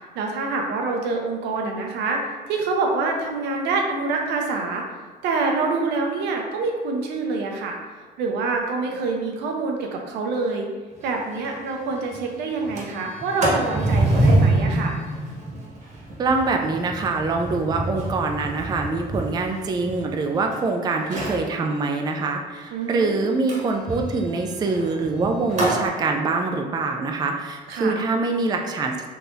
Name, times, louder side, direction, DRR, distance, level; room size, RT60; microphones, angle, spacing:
voice 1, 0.1-4.8 5.2-7.8 8.2-10.7 11.0-14.9 22.7-23.1 27.7-28.0, right 3 dB, 85° right, 1 dB, 0.6 m, -26 dB
Sliding door, 11.0-11.1 11.4-11.5 11.9-12.2 12.6-20.6 21.0-21.5 23.5-25.9, right 1 dB, 45° right, 1.0 m, -26 dB
voice 2, 16.2-28.9, right 3 dB, 25° right, 3 dB, 0.3 m, -24 dB
3.8 x 2.8 x 2.6 m, 1.5 s
cardioid pair, 110°, 17 cm